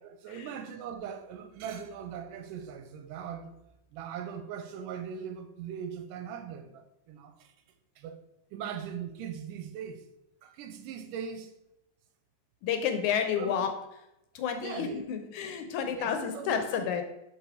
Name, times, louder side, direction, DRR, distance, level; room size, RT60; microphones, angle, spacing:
voice 1, 0.0-3.5 3.9-7.5 8.0-8.2 8.5-10.0 10.4-11.5 13.4-13.6 14.6-15.0 15.9-17.0, right 8 dB, 90° right, 2.3 m, -40 dB
voice 2, 12.6-13.7 14.4-17.0, left 7 dB, 75° left, 2.0 m, -30 dB
6.2 x 5.1 x 4.8 m
omnidirectional pair, 3.8 m